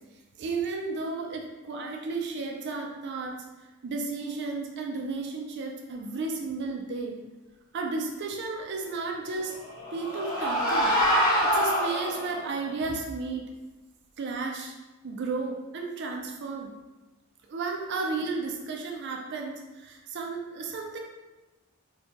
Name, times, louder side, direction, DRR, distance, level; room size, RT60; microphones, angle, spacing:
voice 1, 0.4-3.3 3.8-7.2 7.7-9.5 9.9-10.9 11.4-13.5 14.2-14.7 15.0-16.7 17.5-21.0, right 3 dB, 55° right, 1 dB, 0.4 m, -33 dB
sound 1, 9.5-12.5, equal, 40° left, 1.2 m, -25 dB
4.3 x 2.2 x 2.8 m, 1.1 s
head